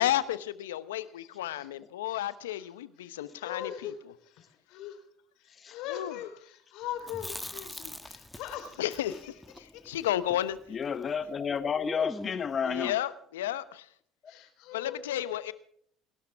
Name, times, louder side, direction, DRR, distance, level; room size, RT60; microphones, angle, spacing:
voice 1, 0.0-3.7 5.9-6.1 8.8-9.1 9.9-10.6 12.7-13.8 14.7-15.5, left 13 dB, 85° left, 0.9 m, -32 dB
voice 2, 2.1-2.7 3.0-3.9 4.7-5.0 5.7-9.3 10.0-10.1 14.3-15.3, left 10 dB, 70° left, 3.7 m, -41 dB
Chewing mastication, 7.0-11.2 11.4-11.5 11.8-12.6, left 1 dB, 5° left, 1.4 m, -42 dB
voice 3, 10.7-13.0, left 6 dB, 40° left, 0.9 m, -31 dB
28.5 x 12.5 x 3.6 m
hypercardioid pair, 60°, 0 cm